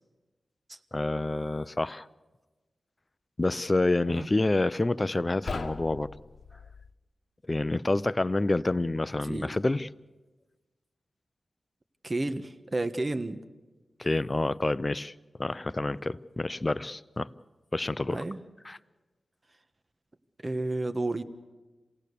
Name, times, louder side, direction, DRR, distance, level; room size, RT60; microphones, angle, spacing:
voice 1, 0.9-2.1 3.4-6.1 7.5-9.9 14.0-15.1 15.4-17.3 17.7-18.2 18.7-18.8, left 2 dB, 30° left, 16 dB, 0.6 m, -28 dB
sound 1, 5.3-6.9, left 4 dB, 60° left, 1.3 m, -39 dB
voice 2, 12.0-13.4 18.1-18.4 20.4-21.2, right 2 dB, 35° right, 9 dB, 1.3 m, -31 dB
27.0 x 18.0 x 6.8 m, 1.2 s
cardioid pair, 60°, 0 cm